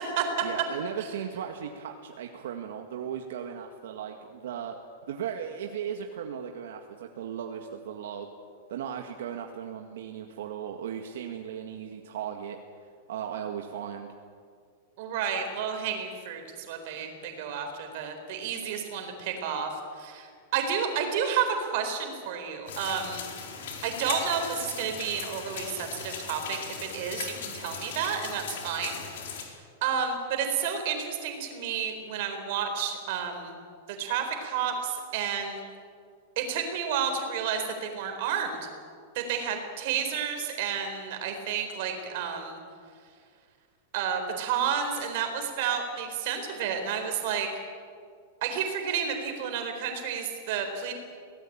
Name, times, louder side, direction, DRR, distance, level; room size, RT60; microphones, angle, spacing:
voice 1, 0.4-4.8 5.1-8.3 8.7-12.6 13.1-14.1, right 8 dB, 70° right, 3 dB, 1.9 m, -36 dB
voice 2, 15.0-16.4 16.7-19.7 20.0-20.3 20.5-23.2 23.8-26.6 26.9-29.0 29.8-33.5 34.0-35.6 36.4-38.6 39.1-42.6 43.9-47.5 48.4-50.9, right 7 dB, 45° right, 5 dB, 4.2 m, -31 dB
sound 1, 22.7-29.5, left 6 dB, 60° left, 4.7 m, -38 dB
24.0 x 18.5 x 8.8 m, 2.1 s
supercardioid pair, 175°, 0 cm